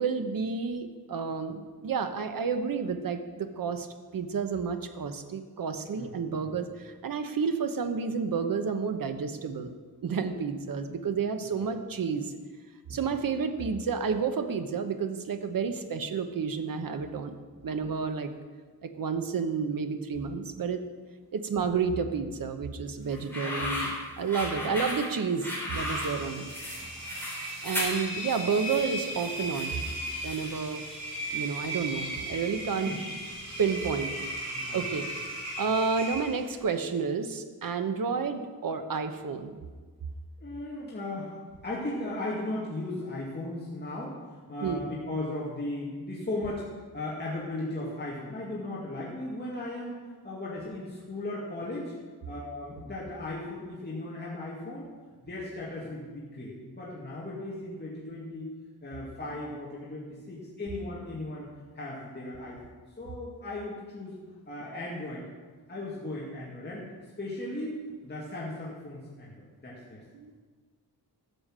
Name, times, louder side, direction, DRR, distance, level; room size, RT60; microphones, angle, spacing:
voice 1, 0.0-3.9 4.1-9.7 10.0-12.3 12.9-17.3 17.6-18.3 18.8-20.8 21.3-23.9 24.2-26.4 27.6-29.7 30.2-30.8 31.3-32.9 33.6-34.1 34.4-35.1 35.6-39.6 44.6-44.8 70.1-70.4, right 5 dB, 60° right, 8 dB, 1.1 m, -30 dB
voice 2, 5.9-6.5 11.6-11.7 12.9-13.1 23.4-23.8 24.5-24.8 26.8-26.9 32.9-33.0 34.5-34.9 40.4-41.4 41.6-44.2 44.5-46.6 46.9-50.0 50.2-51.9 52.3-54.9 55.3-58.5 58.8-61.5 61.7-64.2 64.5-65.2 65.7-66.9 67.2-70.0, left 2 dB, 25° left, -6 dB, 2.2 m, -37 dB
sound 1, 23.1-30.7, left 1 dB, 5° left, 4.0 m, -36 dB
Engine, 25.7-36.6, right 1 dB, 45° right, 4.4 m, -37 dB
13.5 x 7.2 x 7.5 m, 1.5 s
wide cardioid pair, 155°, 38 cm